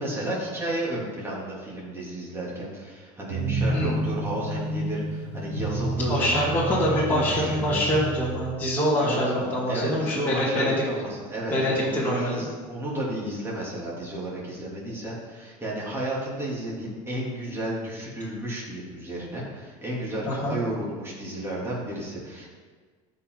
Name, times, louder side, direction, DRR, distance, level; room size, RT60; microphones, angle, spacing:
voice 1, 0.0-6.4 6.9-7.9 9.0-22.5, right 1 dB, 15° right, -6 dB, 3.3 m, -32 dB
sound 1, 3.3-8.5, right 2 dB, 75° right, 2.1 m, -30 dB
voice 2, 3.7-4.0 6.1-10.8 11.5-12.5 20.2-20.6, left 1 dB, 10° left, -8 dB, 2.3 m, -25 dB
14.5 x 5.6 x 4.1 m, 1.5 s
supercardioid pair, 135°, 17 cm